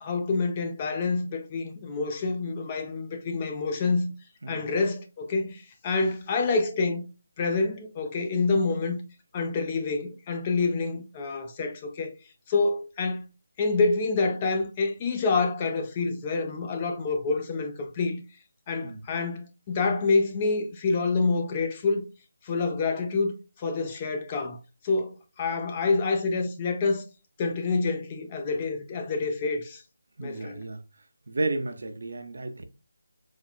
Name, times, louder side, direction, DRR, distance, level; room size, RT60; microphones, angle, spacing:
voice 1, 0.0-4.1 4.5-7.1 7.4-9.0 9.3-12.1 12.5-13.3 13.6-18.2 18.7-22.1 22.4-23.3 23.6-24.6 24.8-27.0 27.4-29.8 30.2-30.6, left 3 dB, 20° left, 0.4 m, -27 dB
voice 2, 30.2-30.8 31.3-32.6, right 2 dB, 65° right, 0.6 m, -32 dB
4.2 x 2.4 x 2.2 m
figure-of-eight pair, 170°, 0 cm